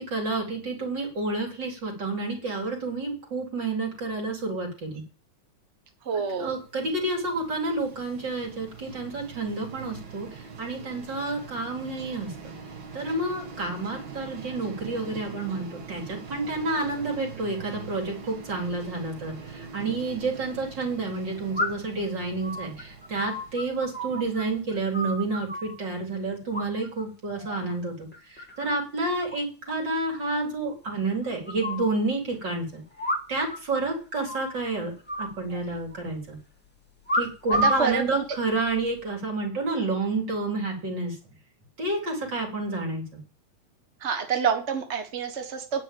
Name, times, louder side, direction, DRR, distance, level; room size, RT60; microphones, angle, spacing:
voice 1, 0.0-5.0 6.1-12.3 12.9-27.9 28.3-32.8 33.3-34.9 35.2-36.4 37.1-41.2 41.8-43.0, right 3 dB, 35° right, 0 dB, 4.2 m, -30 dB
voice 2, 6.1-6.5 37.6-38.2 44.0-45.8, right 6 dB, 55° right, 5 dB, 0.7 m, -27 dB
sound 1, 6.4-25.4, right 5 dB, 75° right, 3.6 m, -43 dB
sound 2, 19.7-19.8 21.5-22.0 22.4-24.5 24.7-25.7 26.5-27.1 27.4-27.7 28.1-28.7 29.0-29.1 29.3-29.4 29.7-29.8 30.1-30.2 30.9-31.9 33.0-33.6 33.8-33.9 34.2-34.6 35.1-36.0 37.1-37.9 38.7-39.0, equal, 5° left, 1.2 m, -30 dB
10.5 x 6.4 x 8.4 m, 0.36 s
omnidirectional pair, 3.5 m